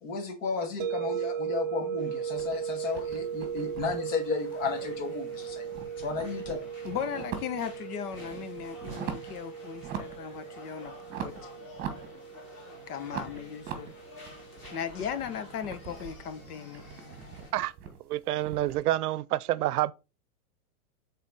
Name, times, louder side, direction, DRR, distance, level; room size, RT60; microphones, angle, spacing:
voice 1, 0.0-5.7 6.0-6.6 13.0-13.1, left 4 dB, 60° left, 2.3 m, -33 dB
sound 1, 0.8-15.7, right 8 dB, 40° right, 0.4 m, -38 dB
sound 2, 2.0-17.5, left 2 dB, 25° left, 3.4 m, -51 dB
sound 3, 2.3-5.2 5.5-7.8 8.1-9.4 9.7-10.3 10.6-12.6 13.1-18.8, right 8 dB, 20° right, 1.2 m, -42 dB
voice 2, 6.8-10.9 11.2-11.3 12.9-13.9 14.7-16.8, left 8 dB, 85° left, 1.2 m, -37 dB
voice 3, 18.1-19.9, right 15 dB, 90° right, 0.6 m, -28 dB
7.6 x 3.9 x 4.1 m
supercardioid pair, 165°, 44 cm